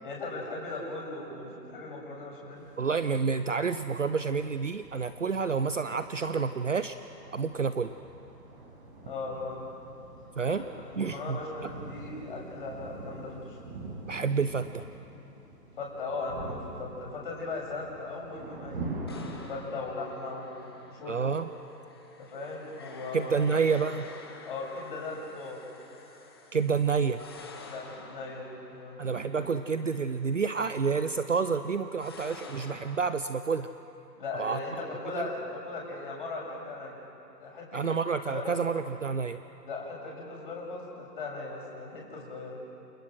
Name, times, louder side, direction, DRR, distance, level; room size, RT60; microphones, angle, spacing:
voice 1, 0.0-2.7 9.0-9.7 10.4-13.6 15.8-18.9 19.5-21.3 22.2-23.5 24.5-25.6 27.7-29.2 34.2-37.0 37.4-38.0 38.2-38.5 39.6-42.6, left 3 dB, 30° left, -3 dB, 7.2 m, -38 dB
sound 1, 2.6-19.5, right 2 dB, 35° right, 6.0 m, -45 dB
voice 2, 2.8-7.0 7.3-7.9 10.4-10.6 11.0-11.4 14.1-14.9 21.1-21.5 23.1-24.1 26.5-27.2 29.0-33.7 34.3-34.6 35.2-35.3 37.7-39.4, right 5 dB, 50° right, 11 dB, 0.8 m, -29 dB
sound 2, 19.1-33.0, left 4 dB, 15° left, 1.1 m, -50 dB
29.5 x 27.5 x 6.4 m, 2.9 s
figure-of-eight pair, 160°, 50 cm